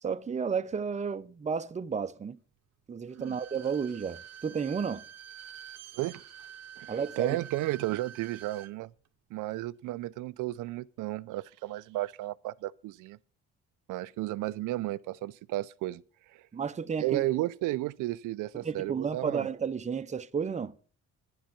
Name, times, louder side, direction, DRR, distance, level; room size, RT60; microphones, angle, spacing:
voice 1, 0.0-2.4 2.9-5.0 6.9-7.4 16.5-17.2 18.6-20.7, right 6 dB, 25° right, 0.6 m, -32 dB
Bowed string instrument, 3.1-8.7 9.1-9.2, right 10 dB, 55° right, 0.8 m, -48 dB
voice 2, 6.8-8.9 9.3-13.2 13.9-16.0 16.3-16.4 17.0-19.5, right 16 dB, 85° right, 0.5 m, -33 dB
10.5 x 9.9 x 5.9 m
cardioid pair, 90°, 30 cm